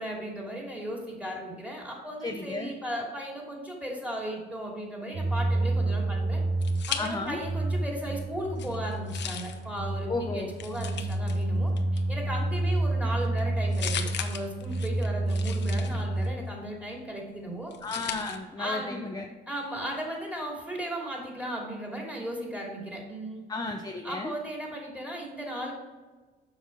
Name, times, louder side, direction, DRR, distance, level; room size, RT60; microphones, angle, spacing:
voice 1, 0.0-6.4 6.9-17.7 18.6-19.0 19.5-23.4 24.0-25.7, right 1 dB, 5° right, -2 dB, 2.7 m, -36 dB
voice 2, 2.2-2.7 7.0-7.4 10.1-10.5 17.8-19.3 23.5-24.3, left 3 dB, 20° left, 3 dB, 0.7 m, -33 dB
sound 1, 5.1-16.3, right 2 dB, 50° right, 1.4 m, -29 dB
sound 2, 6.2-7.6 8.0-18.4, left 8 dB, 65° left, 0.8 m, -40 dB
7.4 x 5.7 x 4.6 m, 1.3 s
cardioid pair, 90°, 20 cm